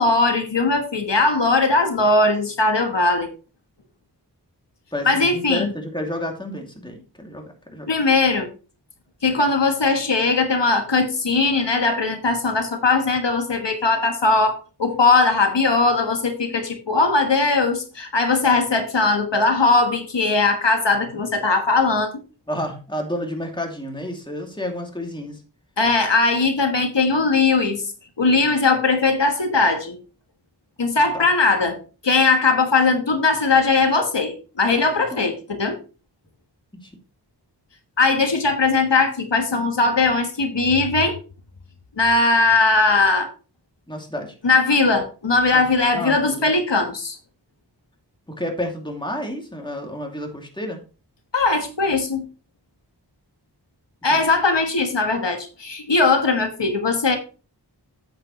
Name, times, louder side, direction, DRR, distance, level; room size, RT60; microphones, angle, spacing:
voice 1, 0.0-3.3 5.0-5.7 7.9-8.5 9.2-22.1 25.8-27.8 28.2-30.0 30.8-31.8 32.0-35.8 38.0-41.1 42.0-43.3 44.4-47.2 51.3-52.3 54.0-57.2, left 3 dB, 80° left, 1.4 m, -19 dB
voice 2, 4.9-7.9 22.5-25.4 31.1-31.3 35.1-35.3 36.8-36.9 43.9-44.3 45.5-45.6 45.9-46.5 48.3-50.8 54.1-54.3, left 1 dB, 10° left, 2.6 m, -30 dB
8.5 x 8.3 x 3.1 m
wide cardioid pair, 45°, 42 cm